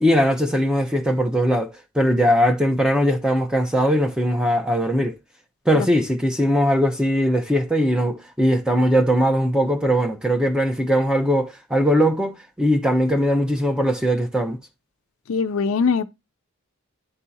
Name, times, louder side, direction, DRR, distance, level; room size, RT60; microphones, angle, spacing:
voice 1, 0.0-5.1 5.7-14.6, equal, 5° right, 0.7 m, -20 dB
voice 2, 15.3-16.0, left 5 dB, 75° left, 0.4 m, -21 dB
11.0 x 3.6 x 2.7 m
head